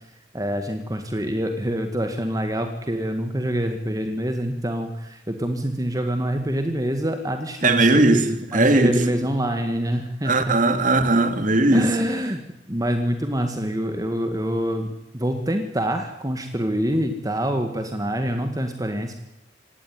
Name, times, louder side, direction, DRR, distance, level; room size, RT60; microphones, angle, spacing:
voice 1, 0.3-8.2 8.5-10.7 11.7-12.4 12.7-19.1, equal, 20° right, 6 dB, 1.9 m, -26 dB
voice 2, 7.6-8.9 10.2-11.9, right 2 dB, 45° right, 8 dB, 2.8 m, -18 dB
26.0 x 18.5 x 9.4 m, 0.84 s
head